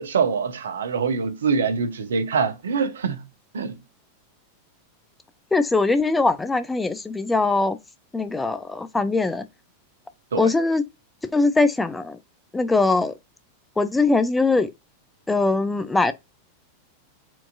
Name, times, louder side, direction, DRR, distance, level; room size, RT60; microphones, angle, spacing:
voice 1, 0.0-3.2 3.5-3.7 10.3-10.5, right 5 dB, 65° right, 0.7 m, -24 dB
voice 2, 5.5-7.8 8.1-9.4 10.4-10.8 11.3-12.2 12.5-13.1 13.8-14.7 15.3-16.1, left 3 dB, 10° left, 0.4 m, -21 dB
4.4 x 2.7 x 2.5 m
figure-of-eight pair, 90°, 0 cm